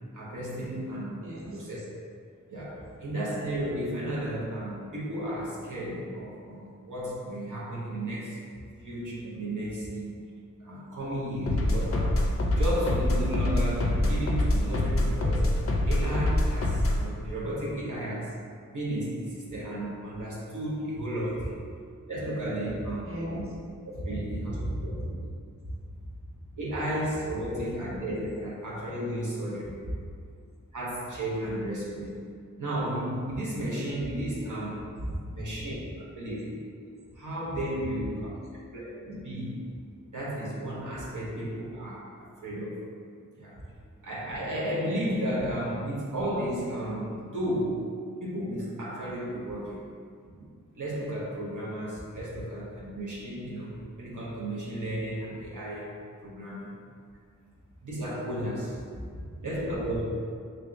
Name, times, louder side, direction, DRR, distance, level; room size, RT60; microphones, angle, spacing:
voice 1, 0.1-1.2 1.5-1.8 2.5-8.4 8.8-10.2 10.6-12.2 12.5-15.6 15.9-18.3 18.7-21.6 22.1-23.1 24.0-24.9 26.6-29.7 30.7-32.2 32.6-34.8 35.3-36.6 37.1-38.3 38.7-39.6 40.1-42.8 43.4-43.6 44.0-47.9 48.2-49.9 50.7-55.9 56.2-56.7 57.8-58.8 59.4-60.0, right 1 dB, 70° right, -6 dB, 0.8 m, -33 dB
voice 2, 1.2-1.6 23.0-23.6 24.1-25.2 25.6-25.7 50.3-50.5 59.0-59.4, equal, 45° right, -6 dB, 0.7 m, -36 dB
sound 1, 11.5-17.1, left 1 dB, 45° left, 0.4 m, -25 dB
3.4 x 3.4 x 2.5 m, 2.2 s
wide cardioid pair, 65°, 32 cm